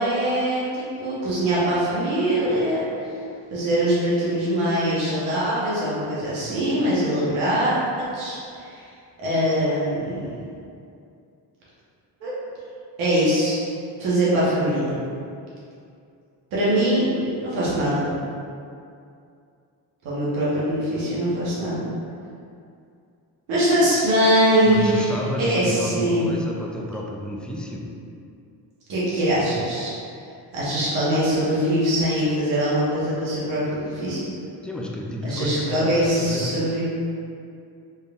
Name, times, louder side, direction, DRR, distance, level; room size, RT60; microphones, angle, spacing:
voice 1, 0.0-3.1 3.5-8.8 9.2-10.3 12.2-12.3 13.0-13.6 14.0-15.0 16.5-18.1 20.0-21.8 23.5-26.3 28.9-29.9 30.5-34.3 35.2-36.8, equal, 80° right, -8 dB, 1.5 m, -22 dB
voice 2, 23.8-24.1 24.7-27.9 34.6-36.6, left 1 dB, ahead, -2 dB, 0.5 m, -31 dB
4.2 x 3.3 x 2.5 m, 2.5 s
supercardioid pair, 60°, 47 cm